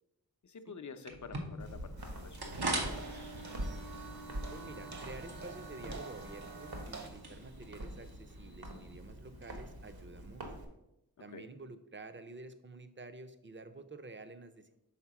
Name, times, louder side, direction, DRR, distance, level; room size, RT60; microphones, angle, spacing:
voice 1, 0.4-3.2 11.3-11.5, left 5 dB, 50° left, 10 dB, 0.6 m, -50 dB
sound 1, 1.1-9.0, right 2 dB, 90° right, 1.0 m, -42 dB
Walk footsteps, 1.6-10.6, right 1 dB, 70° right, 1.3 m, -46 dB
sound 2, 2.0-7.1, right 3 dB, 50° right, 0.9 m, -51 dB
voice 2, 4.5-10.4 11.2-14.7, right 3 dB, 30° right, 10 dB, 0.6 m, -50 dB
5.8 x 3.9 x 5.8 m, 0.87 s
wide cardioid pair, 65°, 37 cm